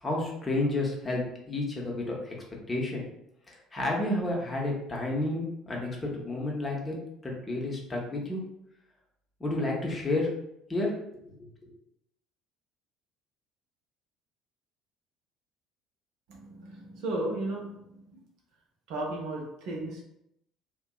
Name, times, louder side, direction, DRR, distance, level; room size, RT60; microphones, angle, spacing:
voice 1, 0.0-1.2 1.5-2.3 2.7-3.0 3.5-7.0 7.2-8.4 9.4-10.3 10.7-11.5, left 2 dB, 20° left, -2 dB, 0.7 m, -31 dB
voice 2, 16.3-18.2 18.9-20.0, right 2 dB, 60° right, -2 dB, 0.6 m, -35 dB
2.6 x 2.2 x 2.2 m, 0.78 s
figure-of-eight pair, 55°, 0 cm